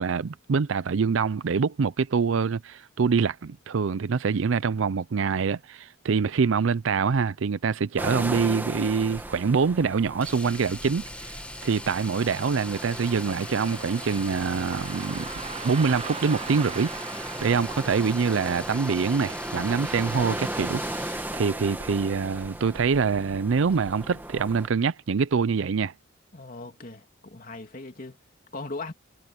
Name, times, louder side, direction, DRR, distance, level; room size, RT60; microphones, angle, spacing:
voice 1, 0.0-15.3 15.6-16.9 17.2-25.9, right 5 dB, 70° right, 0.5 m, -25 dB
sound 1, 8.0-24.7, right 1 dB, 10° right, 1.7 m, -37 dB
Domestic sounds home sounds, 10.2-21.4 23.6-23.7 24.0-24.1, left 1 dB, 5° left, 1.7 m, -41 dB
Car passing by, 11.5-22.3 22.6-22.7 23.6-23.8 24.3-24.4 24.9-25.0, right 6 dB, 30° right, 0.7 m, -43 dB
voice 2, 26.3-28.2 28.5-28.9, left 3 dB, 40° left, 2.6 m, -39 dB
head